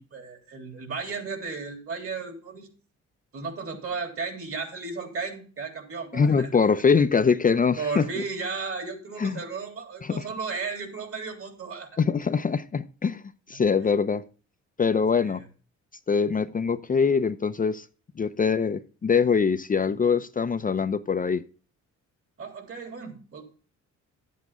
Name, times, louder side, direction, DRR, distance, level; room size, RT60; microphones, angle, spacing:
voice 1, 0.0-2.7 3.3-6.5 7.7-12.0 13.5-13.6 15.1-15.4 22.4-23.4, right 4 dB, 50° right, 3.3 m, -35 dB
voice 2, 6.1-8.1 9.2-9.4 10.0-10.3 12.0-13.2 13.5-14.2 14.8-15.4 16.1-17.9 18.2-21.4, left 5 dB, 30° left, 0.6 m, -23 dB
11.0 x 8.4 x 3.6 m
cardioid pair, 90°, 30 cm